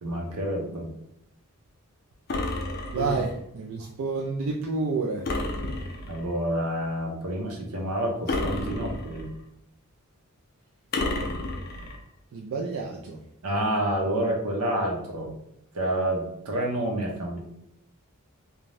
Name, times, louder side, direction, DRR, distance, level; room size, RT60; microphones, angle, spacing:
voice 1, 0.0-0.9 2.9-3.1 6.1-9.2 13.4-15.3 15.7-17.4, right 1 dB, 85° right, 1 dB, 0.7 m, -28 dB
sound 1, 2.3-3.4 5.3-6.3 8.3-9.4 10.9-12.0, left 2 dB, 45° left, 0.4 m, -31 dB
voice 2, 2.9-5.2 12.3-13.2, right 4 dB, 65° right, 0 dB, 0.3 m, -29 dB
2.6 x 2.1 x 3.2 m, 0.77 s
head